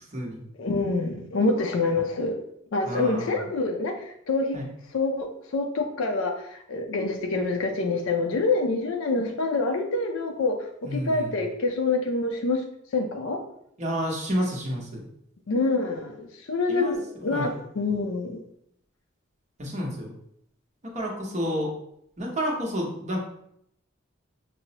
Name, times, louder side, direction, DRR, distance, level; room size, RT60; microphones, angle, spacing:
voice 1, 0.6-2.3 2.7-4.0 4.3-4.6 4.9-10.6 10.9-12.6 12.9-13.4 15.5-18.4, left 3 dB, 70° left, 4 dB, 0.5 m, -26 dB
voice 2, 2.8-3.4 4.5-4.7 10.8-11.3 13.8-15.0 16.7-16.9 17.3-17.6 19.6-20.1 20.8-21.7 22.2-23.2, equal, 35° right, -2 dB, 0.8 m, -30 dB
5.9 x 2.0 x 2.8 m, 0.73 s
head